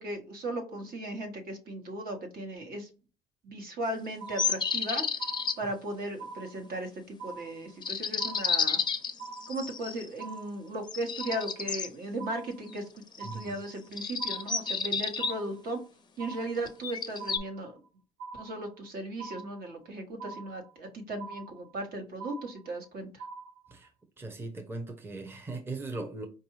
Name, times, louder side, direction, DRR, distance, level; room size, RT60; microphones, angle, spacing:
voice 1, 0.0-2.9 3.4-5.1 5.6-8.8 9.5-15.8 16.2-17.8 18.3-23.2, right 1 dB, 60° right, 1.3 m, -37 dB
sound 1, 4.2-4.9 5.2-5.9 6.2-6.9 7.2-7.9 8.2-8.9 9.2-9.9 10.2-10.9 11.2-11.9 12.2-12.9 13.2-13.9 14.2-14.9 15.2-15.9 16.2-16.9 17.2-17.9 18.2-18.9 19.2-19.9 20.2-20.9 21.2-21.9 22.2-22.9 23.2-23.9, right 4 dB, 80° right, 1.6 m, -44 dB
sound 2, 4.4-5.6 7.8-10.1 10.9-11.9 13.1-13.5 13.9-15.3 16.7-17.4, left 5 dB, 25° left, 0.5 m, -31 dB
voice 2, 13.2-13.6 23.7-23.9 24.2-26.3, right 3 dB, 15° right, 0.7 m, -39 dB
4.7 x 2.5 x 3.1 m
cardioid pair, 110°, 17 cm